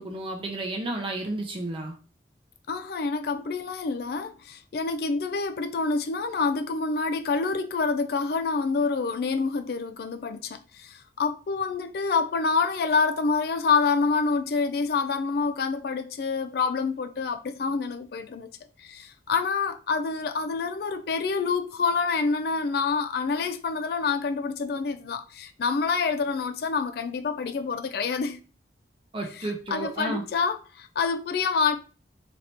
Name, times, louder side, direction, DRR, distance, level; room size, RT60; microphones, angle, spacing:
voice 1, 0.0-1.9 29.1-30.2, right 2 dB, 30° right, 0.7 m, -32 dB
voice 2, 2.7-18.5 18.8-28.4 29.3-31.7, left 4 dB, 55° left, 0.3 m, -27 dB
4.0 x 2.8 x 3.3 m
head